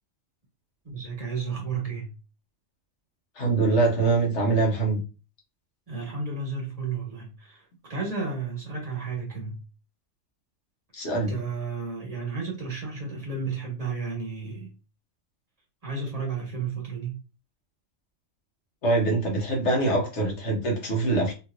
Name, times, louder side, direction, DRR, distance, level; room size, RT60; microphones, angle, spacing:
voice 1, 0.8-2.1 5.9-9.6 11.0-14.7 15.8-17.2, right 4 dB, 30° right, 1.4 m, -33 dB
voice 2, 3.4-5.0 10.9-11.3 18.8-21.3, right 3 dB, 60° left, 1.4 m, -24 dB
3.1 x 3.0 x 2.5 m
omnidirectional pair, 1.4 m